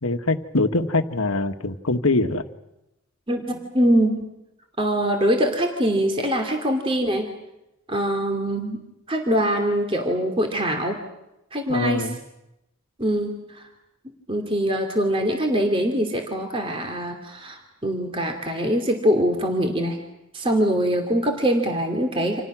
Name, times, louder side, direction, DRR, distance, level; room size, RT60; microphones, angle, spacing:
voice 1, 0.0-2.5 11.7-12.2, left 2 dB, 85° left, 8 dB, 1.6 m, -23 dB
voice 2, 3.3-4.3 4.8-7.3 7.9-8.8 9.1-11.0 11.5-12.1 13.0-13.7 14.3-20.0 20.3-22.4, equal, 25° right, 4 dB, 2.7 m, -23 dB
29.5 x 27.0 x 6.2 m, 0.89 s
head